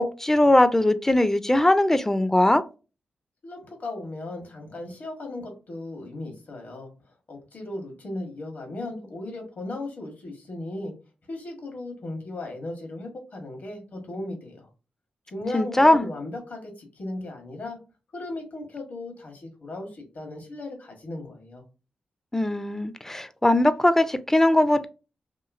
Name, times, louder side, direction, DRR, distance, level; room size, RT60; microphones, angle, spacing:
voice 1, 0.0-2.6 15.5-16.1 22.3-24.9, left 1 dB, 10° left, 0.4 m, -20 dB
voice 2, 3.4-6.9 7.3-10.9 11.3-14.7 15.3-17.8 18.1-21.6, left 2 dB, 65° left, 1.3 m, -36 dB
2.9 x 2.7 x 2.4 m
cardioid pair, 55°, 3 cm